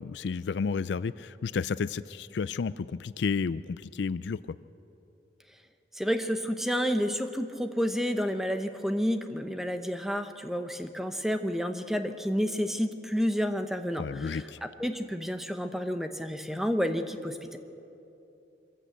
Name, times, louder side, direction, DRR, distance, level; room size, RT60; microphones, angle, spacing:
voice 1, 0.0-4.6 14.0-14.6, left 5 dB, 65° left, 16 dB, 0.4 m, -31 dB
voice 2, 5.9-14.4 14.8-17.6, equal, ahead, 7 dB, 0.9 m, -30 dB
23.5 x 14.5 x 8.1 m, 2.8 s
head